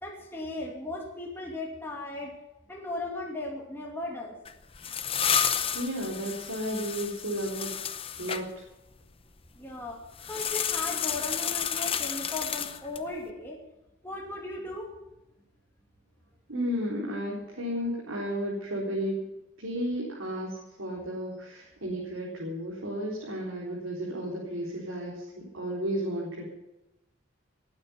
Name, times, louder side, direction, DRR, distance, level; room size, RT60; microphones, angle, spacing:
voice 1, 0.0-2.4 2.7-4.4 9.6-10.0 10.3-13.6 14.0-14.9, left 2 dB, 10° left, -1 dB, 2.4 m, -37 dB
sound 1, 4.4-8.4 10.2-13.1, left 8 dB, 25° left, 0.7 m, -31 dB
voice 2, 5.7-7.7 8.2-8.6 16.5-19.2 19.6-20.5 20.8-26.5, equal, 80° right, -5 dB, 4.2 m, -33 dB
20.0 x 9.6 x 5.8 m, 0.95 s
head